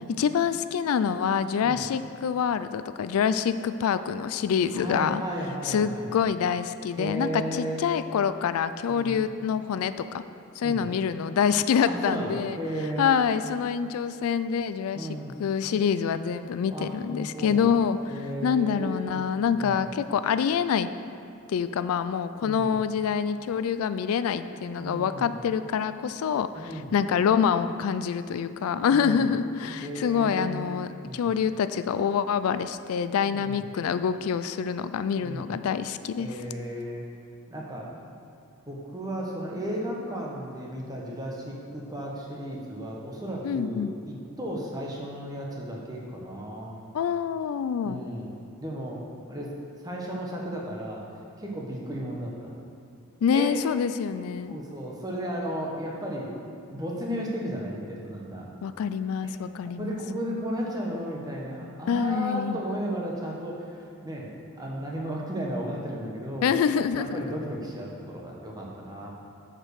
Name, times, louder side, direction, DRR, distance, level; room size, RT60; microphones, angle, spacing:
voice 1, 0.2-5.2 5.6-10.2 10.6-12.6 13.0-15.1 15.4-18.1 18.4-20.9 21.5-36.4 43.4-43.9 46.9-48.0 53.2-54.6 58.6-60.0 61.9-62.6 66.4-67.4, left 7 dB, 80° left, 12 dB, 0.3 m, -26 dB
voice 2, 4.7-6.1 7.0-7.8 8.9-9.2 10.6-10.9 11.9-13.1 14.9-15.3 16.7-17.7 18.1-19.2 19.5-19.8 22.4-22.8 24.8-25.3 26.5-26.9 28.9-29.2 29.8-30.6 31.0-31.3 33.3-33.6 35.2-35.5 36.2-37.0 37.5-37.9 38.7-46.8 47.8-48.3 48.6-49.5 49.8-51.0 51.4-52.5 53.3-53.5 54.5-56.3 56.7-58.5 59.2-59.3 59.8-64.3 64.6-66.5 67.0-69.1, right 1 dB, 15° right, -2 dB, 1.0 m, -34 dB
7.3 x 5.1 x 6.4 m, 2.6 s
head